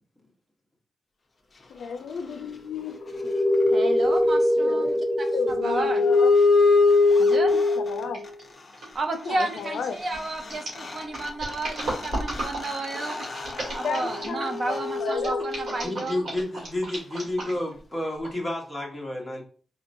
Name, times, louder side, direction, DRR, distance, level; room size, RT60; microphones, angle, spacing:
voice 1, 1.7-2.9 4.6-6.3 7.5-8.2 9.1-10.0 13.8-15.5, left 5 dB, 70° left, 6 dB, 0.4 m, -33 dB
sound 1, 2.9-8.3 10.2-10.3 10.4-15.9, left 2 dB, 30° left, 0.6 m, -23 dB
voice 2, 3.7-6.0 7.2-7.5 8.9-13.2 13.7-16.2, right 2 dB, 40° right, 5 dB, 0.6 m, -32 dB
sound 2, 8.1-8.4 8.7-14.6 15.1-17.8 18.2-18.3, right 1 dB, 65° right, 1.9 m, -35 dB
voice 3, 15.8-19.4, left 1 dB, 5° left, -2 dB, 1.1 m, -30 dB
4.3 x 2.8 x 2.6 m, 0.41 s
wide cardioid pair, 155°, 0 cm